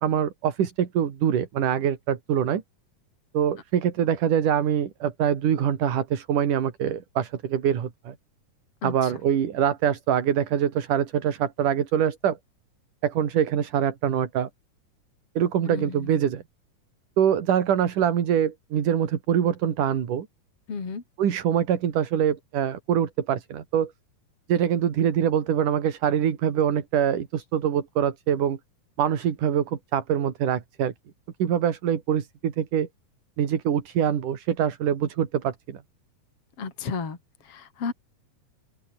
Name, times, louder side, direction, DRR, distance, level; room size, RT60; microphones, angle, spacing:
voice 1, 0.0-2.6 3.3-8.2 8.8-12.4 13.0-14.5 15.4-16.4 17.2-20.3 21.2-23.9 24.5-28.6 29.0-30.9 31.4-32.9 33.4-35.8, right 9 dB, 75° right, 3.8 m, -24 dB
voice 2, 8.8-9.2 15.7-16.2 20.7-21.0 36.6-37.2 37.4-37.9, left 5 dB, 45° left, 4.5 m, -33 dB
open air
omnidirectional pair, 3.7 m